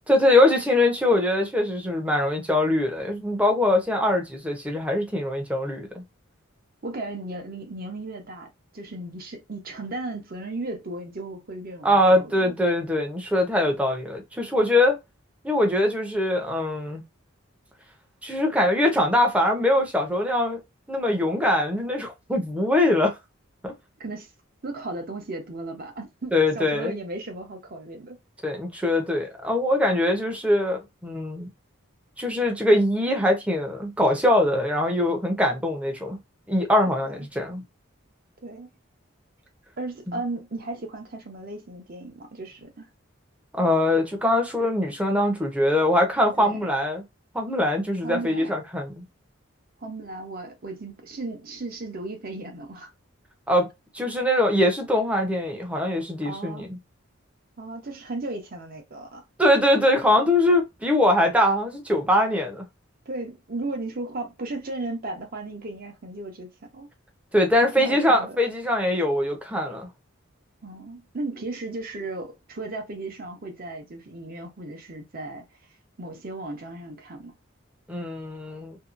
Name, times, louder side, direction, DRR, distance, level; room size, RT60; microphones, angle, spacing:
voice 1, 0.1-6.0 11.8-15.0 15.4-17.0 18.2-20.6 20.9-23.1 23.6-23.7 26.3-27.0 28.4-31.5 32.2-36.2 36.5-37.6 40.1-40.2 43.5-47.0 47.3-49.0 53.5-53.7 53.9-56.8 59.4-62.7 67.3-69.9 77.9-78.8, left 1 dB, 5° right, 0.6 m, -22 dB
voice 2, 6.8-8.5 8.7-12.5 24.0-24.3 24.6-28.2 36.9-37.1 38.4-38.7 39.8-42.9 46.4-46.6 48.0-48.5 49.8-52.9 56.2-56.7 57.6-59.2 63.1-66.9 67.8-68.4 70.6-75.5 76.0-77.3, right 2 dB, 45° right, 0.8 m, -35 dB
2.7 x 2.3 x 2.4 m
head